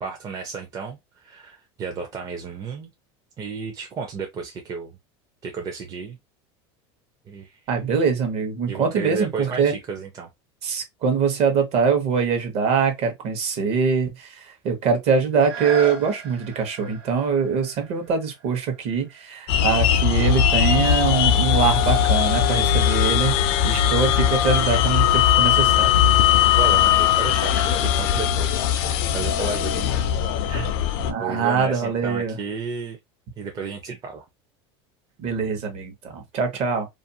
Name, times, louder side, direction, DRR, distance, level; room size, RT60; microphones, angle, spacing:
voice 1, 0.0-2.9 3.4-4.9 5.4-6.2 7.3-7.6 8.7-10.3 26.6-30.1 30.5-30.8 31.2-33.0 33.4-34.2, right 5 dB, 30° right, 0.5 m, -33 dB
voice 2, 7.7-9.7 10.6-25.9 31.1-32.4 35.2-36.9, right 6 dB, 50° right, 0.9 m, -23 dB
sound 1, 15.3-20.9 21.5-21.6, right 5 dB, 85° right, 1.3 m, -37 dB
sound 2, 19.5-31.1, left 9 dB, 70° left, 0.4 m, -19 dB
2.5 x 2.3 x 2.7 m
supercardioid pair, 135°, 13 cm